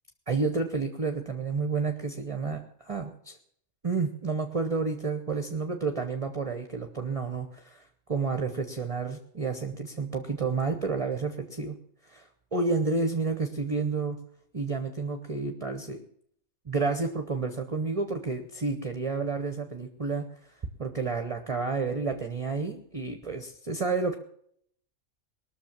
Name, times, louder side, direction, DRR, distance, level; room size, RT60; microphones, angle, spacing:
voice 1, 0.3-3.4 3.8-7.8 8.1-11.8 12.1-14.2 14.5-16.0 16.7-20.3 20.8-24.2, right 4 dB, 30° right, 7 dB, 0.9 m, -30 dB
19.5 x 6.7 x 7.4 m, 0.67 s
omnidirectional pair, 1.4 m